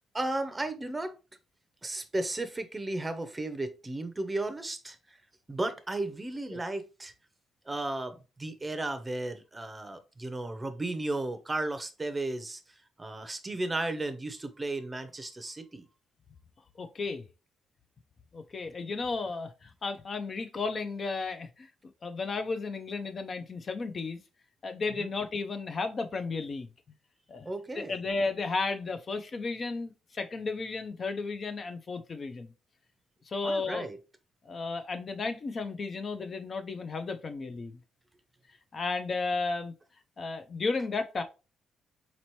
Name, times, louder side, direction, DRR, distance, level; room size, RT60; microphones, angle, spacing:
voice 1, 0.1-1.2 1.8-5.2 5.5-7.1 7.7-12.6 13.0-15.9 25.0-25.1 27.4-28.0 33.4-34.0, right 2 dB, 20° right, 0.6 m, -34 dB
voice 2, 16.8-17.2 18.3-21.7 22.0-24.2 24.6-26.7 27.3-27.5 27.8-32.5 33.3-33.9 34.4-37.8 38.7-39.7 40.2-41.2, left 3 dB, 40° left, 0.5 m, -33 dB
4.1 x 2.9 x 3.0 m
cardioid pair, 90°, 0 cm